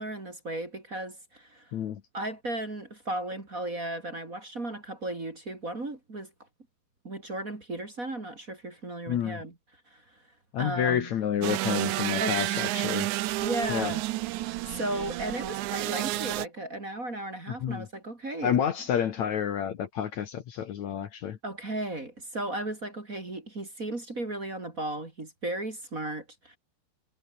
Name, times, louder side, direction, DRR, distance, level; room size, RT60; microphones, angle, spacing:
voice 1, 0.0-1.7 2.1-6.3 7.0-9.5 9.9-10.0 10.6-11.1 12.2-12.6 13.4-14.0 14.4-18.6 21.4-26.6, right 1 dB, 25° right, 2.9 m, -35 dB
voice 2, 9.1-9.4 10.5-13.1 13.7-13.9 17.5-17.9 18.4-21.4, left 9 dB, 60° left, 2.5 m, -29 dB
sound 1, 11.4-16.5, right 18 dB, 80° right, 1.8 m, -30 dB
omnidirectional pair, 4.1 m